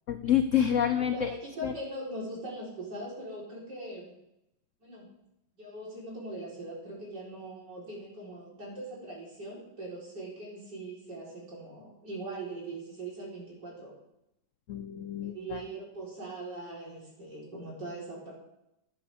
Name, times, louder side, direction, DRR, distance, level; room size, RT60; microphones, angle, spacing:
voice 1, 0.1-1.3 1.6-1.7 14.7-15.6, left 9 dB, 85° left, 9 dB, 0.6 m, -28 dB
voice 2, 1.1-4.1 4.8-5.1 5.6-13.9 15.2-18.3, right 1 dB, 60° right, -5 dB, 4.9 m, -41 dB
11.5 x 11.0 x 3.6 m, 0.84 s
omnidirectional pair, 2.1 m